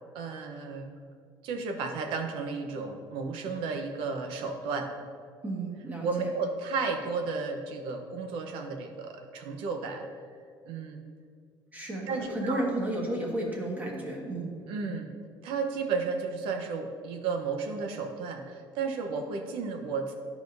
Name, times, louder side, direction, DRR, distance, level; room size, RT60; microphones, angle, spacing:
voice 1, 0.1-0.9 1.4-4.9 6.0-10.2 10.6-11.0 12.1-12.7 14.7-15.1 15.4-20.1, right 4 dB, 85° right, 5 dB, 0.8 m, -33 dB
voice 2, 5.4-6.3 11.7-14.5, right 1 dB, 20° right, -2 dB, 1.6 m, -32 dB
11.5 x 5.0 x 2.6 m, 2.1 s
cardioid pair, 120°, 9 cm